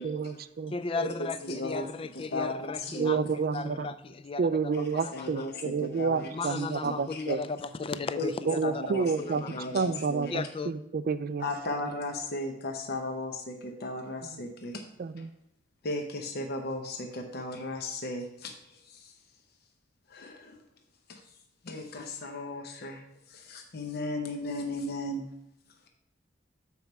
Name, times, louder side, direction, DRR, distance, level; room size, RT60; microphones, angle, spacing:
voice 1, 0.0-0.7 3.0-3.9 4.4-7.4 8.5-9.4 9.7-11.5 11.8-12.0 14.3-14.4 15.0-15.3, right 5 dB, 50° right, 13 dB, 0.4 m, -30 dB
voice 2, 0.7-5.5 6.3-9.7 10.3-10.7, left 4 dB, 30° left, 13 dB, 0.4 m, -36 dB
voice 3, 1.4-1.9 2.1-3.1 4.7-4.8 5.1-6.3 6.8-7.2 8.2-8.3 8.6-10.3 11.4-14.8 15.8-18.5 18.9-19.0 20.1-20.6 21.1-21.2 21.6-23.0 23.3-25.2, left 2 dB, 60° left, 3 dB, 0.8 m, -36 dB
7.1 x 4.6 x 5.3 m, 0.82 s
head